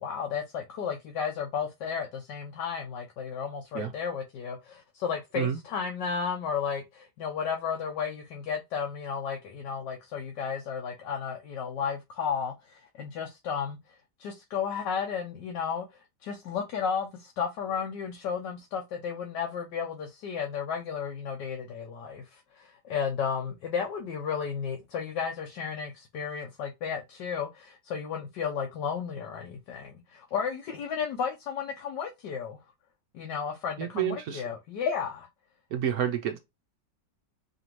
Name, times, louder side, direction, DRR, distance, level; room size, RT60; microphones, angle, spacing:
voice 1, 0.0-32.6 33.1-35.3, left 6 dB, 80° left, 1.4 m, -33 dB
voice 2, 33.8-34.4 35.7-36.4, right 9 dB, 65° right, 1.0 m, -29 dB
5.0 x 2.7 x 3.0 m
omnidirectional pair, 1.8 m